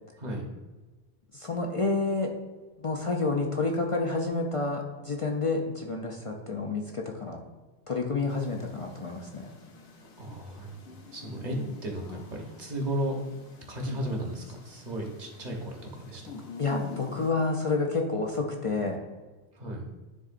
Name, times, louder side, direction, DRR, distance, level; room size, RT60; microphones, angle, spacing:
voice 1, 0.2-0.5 10.2-10.8 11.1-11.5 11.8-13.2 13.7-16.5 19.6-19.9, right 1 dB, 40° right, 0 dB, 1.2 m, -34 dB
voice 2, 1.3-2.3 2.8-7.4 7.9-9.5 13.9-14.0 16.6-19.0, left 3 dB, 40° left, 1 dB, 0.5 m, -29 dB
sound 1, 8.3-17.3, left 4 dB, 70° left, 1.1 m, -46 dB
10.0 x 3.8 x 2.5 m, 1.3 s
omnidirectional pair, 1.2 m